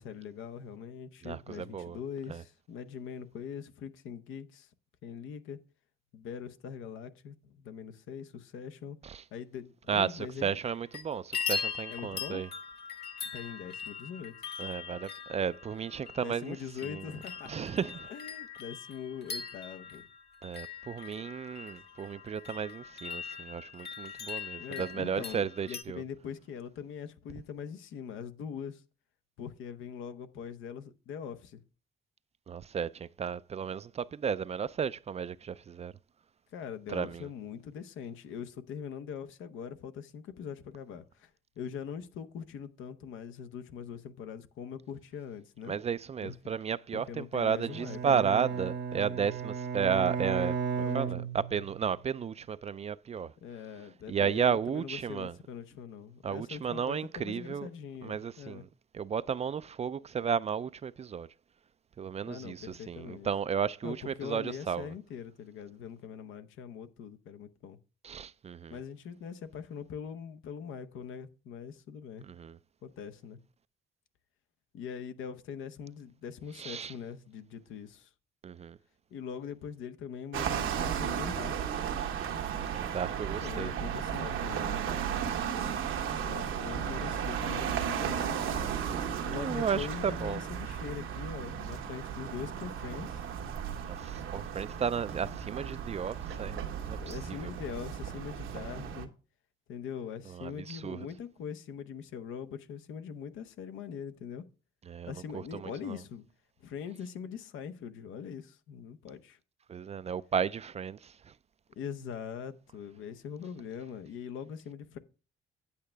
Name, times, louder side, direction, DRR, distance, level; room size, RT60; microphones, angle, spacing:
voice 1, 0.0-4.7 5.0-5.6 6.1-9.0 9.3-10.6 11.9-12.4 13.3-14.3 16.2-17.7 18.1-20.0 24.6-28.8 29.4-31.6 36.5-41.3 41.6-45.7 46.2-46.5 46.9-48.3 50.8-51.3 53.4-58.6 62.3-63.3 63.8-67.8 68.7-72.3 72.8-73.4 74.7-78.1 79.1-81.6 83.4-85.0 86.2-88.3 89.2-93.3 96.9-99.1 99.7-104.4 105.1-106.2 106.6-109.4 111.8-115.0, left 7 dB, 85° left, 0.9 m, -42 dB
voice 2, 1.2-2.0 2.3-2.4 9.0-9.2 9.9-12.5 14.6-16.6 16.8-17.1 17.5-18.1 20.4-26.0 32.5-35.9 36.9-37.3 45.7-50.6 50.9-53.3 54.1-55.3 56.2-57.7 58.0-58.7 58.9-61.3 62.0-64.9 68.0-68.8 72.2-72.6 76.6-76.9 78.4-78.8 82.7-84.0 89.3-90.4 93.9-97.5 100.3-101.1 104.9-106.0 109.7-111.3, right 7 dB, 35° right, 0.4 m, -33 dB
sound 1, 10.6-11.0 11.3-25.8, left 6 dB, 55° left, 1.8 m, -41 dB
Bowed string instrument, 47.6-51.9, right 6 dB, 65° right, 1.0 m, -34 dB
sound 2, 80.3-99.1, right 8 dB, 85° right, 1.2 m, -35 dB
8.8 x 8.4 x 3.4 m
cardioid pair, 90°, 20 cm